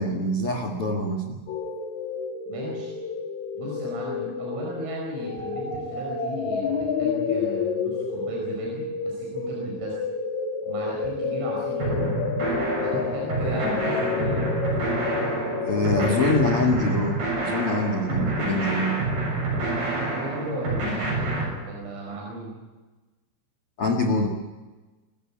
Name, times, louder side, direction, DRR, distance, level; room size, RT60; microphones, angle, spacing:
voice 1, 0.0-1.4 15.7-19.0 23.8-24.3, left 2 dB, 80° left, 2 dB, 1.2 m, -24 dB
sound 1, 1.5-16.6, left 5 dB, 60° left, 2.0 m, -30 dB
voice 2, 2.5-2.9 3.6-10.0 10.7-12.2 12.8-14.5 19.8-22.5, right 1 dB, 90° right, -2 dB, 7.4 m, -35 dB
sound 2, 11.8-21.5, right 2 dB, 55° right, 9.1 m, -28 dB
27.0 x 14.5 x 8.6 m, 1.2 s
omnidirectional pair, 5.7 m